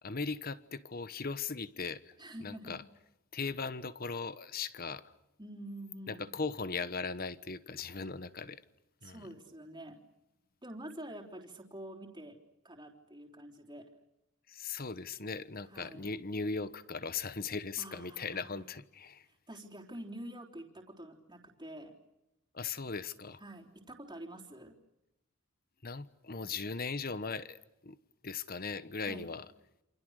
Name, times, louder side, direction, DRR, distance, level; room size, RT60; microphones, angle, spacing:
voice 1, 0.0-2.1 2.4-2.8 3.3-5.1 6.1-8.6 9.0-9.2 14.5-19.2 22.5-23.4 25.8-28.0 28.2-29.4, left 4 dB, 40° left, 1.2 m, -38 dB
voice 2, 2.2-2.8 5.4-6.4 9.0-10.0 10.6-12.4 12.6-13.9 15.7-16.1 17.8-18.6 19.3-22.0 23.4-24.7 29.0-29.3, right 1 dB, 20° right, 3.6 m, -47 dB
28.5 x 27.5 x 6.6 m
head